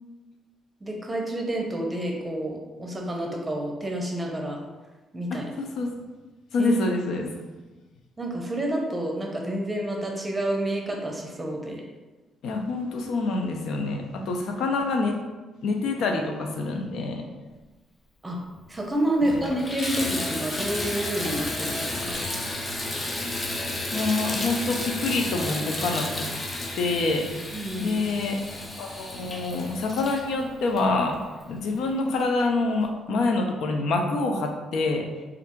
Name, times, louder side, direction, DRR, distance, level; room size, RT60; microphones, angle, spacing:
voice 1, 0.8-4.6 5.1-5.5 6.6-6.7 8.2-11.8 18.2-18.4 18.7-22.2 27.5-28.0, right 1 dB, 15° right, 1 dB, 0.8 m, -29 dB
voice 2, 5.3-6.1 6.5-7.3 12.4-15.2 15.6-17.2 19.3-19.5 23.9-26.4 26.8-27.5 27.8-28.4 28.8-31.2 31.5-35.1, left 3 dB, 75° left, 3 dB, 0.5 m, -26 dB
Water tap faucet / Bathtub (filling or washing), 18.6-18.7 19.1-31.5 32.2-32.3 32.8-32.9, left 1 dB, 30° left, 0.7 m, -32 dB
3.3 x 2.5 x 4.4 m, 1.2 s
cardioid pair, 90°, 0 cm